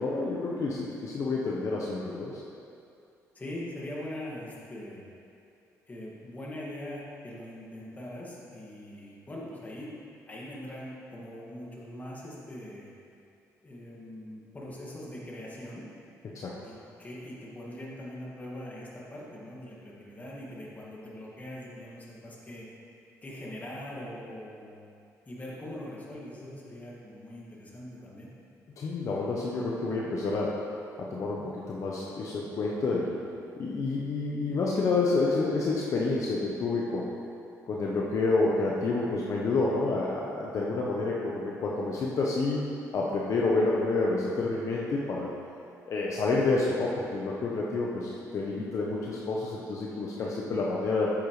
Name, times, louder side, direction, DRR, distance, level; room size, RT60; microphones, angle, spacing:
voice 1, 0.0-2.4 16.3-16.6 28.8-30.6 31.0-33.2 33.6-37.1 37.7-42.6 42.9-45.3 45.9-51.1, left 3 dB, 55° left, -3 dB, 0.9 m, -29 dB
voice 2, 3.3-5.0 5.9-9.9 10.3-12.9 13.6-15.9 16.6-22.7 23.2-24.9 25.3-28.3, left 1 dB, 25° left, -5 dB, 2.0 m, -42 dB
8.7 x 8.1 x 3.2 m, 2.6 s
cardioid pair, 95°, 6 cm